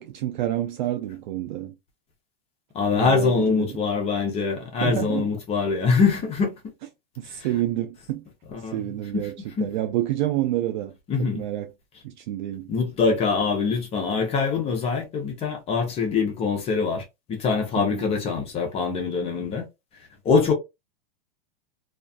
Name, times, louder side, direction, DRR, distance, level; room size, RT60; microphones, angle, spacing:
voice 1, 0.0-1.7 2.9-3.8 4.8-5.3 7.2-8.3 8.7-10.9 11.2-11.7 12.0-12.7 17.8-18.1, right 13 dB, 55° right, 0.4 m, -28 dB
voice 2, 2.7-6.6 8.5-8.8 9.1-9.2 9.6-9.7 11.1-11.4 12.7-19.6 20.2-20.5, left 5 dB, 20° left, 0.7 m, -24 dB
2.4 x 2.4 x 2.2 m
hypercardioid pair, 135°, 29 cm